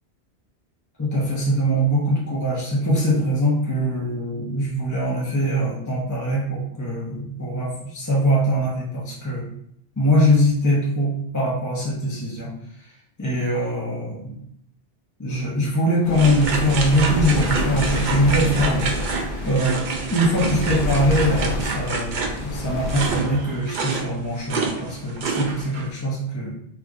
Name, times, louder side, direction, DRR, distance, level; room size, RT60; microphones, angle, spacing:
voice 1, 1.0-9.5 10.0-12.5 13.2-14.3 15.2-19.1 19.4-19.8 20.1-26.6, equal, 20° left, -6 dB, 0.7 m, -22 dB
sound 1, 16.0-23.2, left 2 dB, 55° left, 0.7 m, -28 dB
sound 2, 16.1-25.9, right 4 dB, 55° right, 0.6 m, -28 dB
4.4 x 2.4 x 2.4 m, 0.70 s
omnidirectional pair, 1.1 m